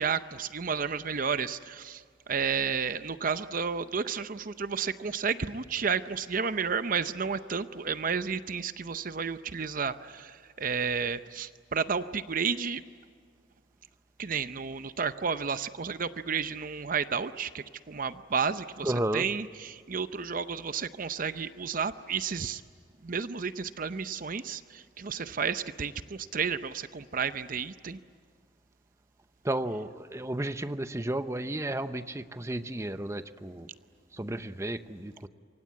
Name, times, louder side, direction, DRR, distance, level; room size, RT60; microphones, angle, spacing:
voice 1, 0.0-12.8 14.2-22.6 23.0-28.0, right 6 dB, 45° right, 12 dB, 0.6 m, -32 dB
voice 2, 18.8-19.3 29.4-33.7 34.1-35.3, right 1 dB, 15° right, 11 dB, 0.8 m, -33 dB
27.5 x 24.5 x 8.5 m, 2.1 s
head